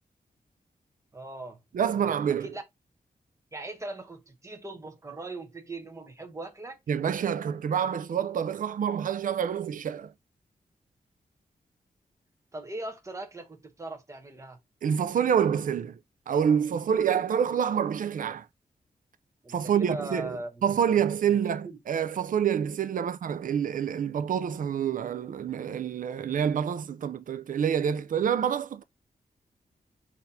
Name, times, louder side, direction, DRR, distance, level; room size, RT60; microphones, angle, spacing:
voice 1, 1.1-2.1 2.4-2.6 3.5-6.8 12.5-14.6 19.4-20.5 21.6-21.8, right 2 dB, 20° right, 0.9 m, -39 dB
voice 2, 1.7-2.5 6.9-10.1 14.8-16.0 16.3-18.5 19.5-28.8, right 8 dB, 65° right, 0.4 m, -27 dB
4.1 x 2.7 x 4.1 m
wide cardioid pair, 140°, 15 cm